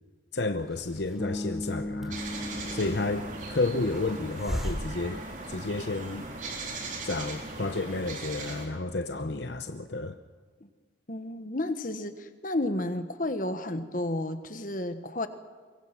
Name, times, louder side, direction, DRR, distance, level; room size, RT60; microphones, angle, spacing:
voice 1, 0.3-2.2 2.7-5.2 5.5-6.3 7.0-10.2, left 2 dB, 70° left, 9 dB, 0.9 m, -31 dB
Hiss, 0.6-6.1, equal, ahead, 3.2 m, -40 dB
Bass guitar, 1.2-5.3, left 1 dB, 20° left, 2.7 m, -39 dB
sound 1, 2.1-8.7, right 2 dB, 45° right, 3.7 m, -39 dB
voice 2, 11.1-15.3, left 1 dB, 45° left, 9 dB, 1.4 m, -32 dB
24.0 x 23.5 x 6.0 m, 1.5 s
head